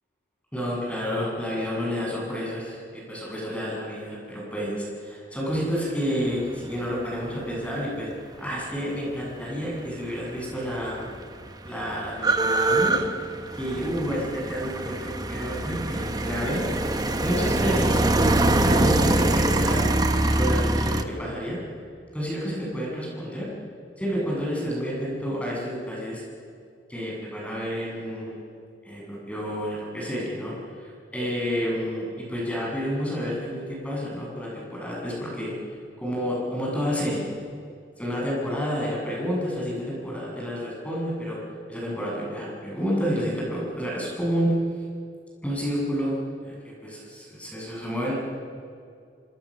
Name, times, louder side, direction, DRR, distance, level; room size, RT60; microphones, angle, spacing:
voice 1, 0.5-8.1 8.4-11.0 11.6-13.0 13.5-16.7 17.2-18.0 18.6-19.9 20.3-21.6 22.1-23.5 24.0-26.2 26.9-28.4 28.8-35.6 36.0-37.3 38.0-41.4 41.7-44.5 45.4-46.2 46.4-46.5 46.8-48.1, equal, 5° left, -4 dB, 7.7 m, -29 dB
sound 1, 10.4-10.5 10.7-21.0, right 2 dB, 20° right, 1.1 m, -23 dB
26.0 x 25.5 x 6.5 m, 2.3 s
head